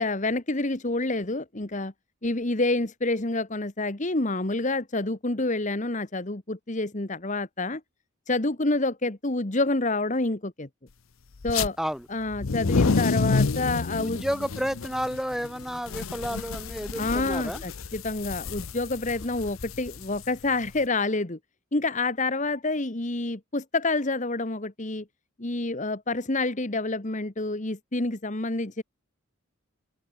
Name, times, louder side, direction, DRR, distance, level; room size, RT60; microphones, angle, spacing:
voice 1, 0.0-1.9 2.2-7.8 8.3-10.7 11.4-11.8 12.1-14.2 17.0-21.4 21.7-25.0 25.4-28.8, left 2 dB, 35° left, 1.4 m, -28 dB
sound 1, 11.4-11.7 12.3-20.8, left 4 dB, 80° left, 0.7 m, -29 dB
voice 2, 11.8-12.1 14.0-17.6, equal, ahead, 4.2 m, -31 dB
head